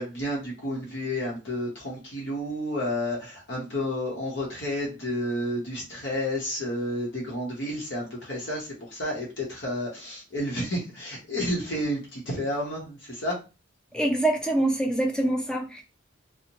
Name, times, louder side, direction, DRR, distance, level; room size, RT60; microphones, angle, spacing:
voice 1, 0.0-13.4, left 1 dB, 65° left, -2 dB, 0.8 m, -31 dB
voice 2, 13.9-15.8, right 1 dB, 5° left, 2 dB, 0.4 m, -25 dB
2.7 x 2.0 x 2.9 m, 0.29 s
head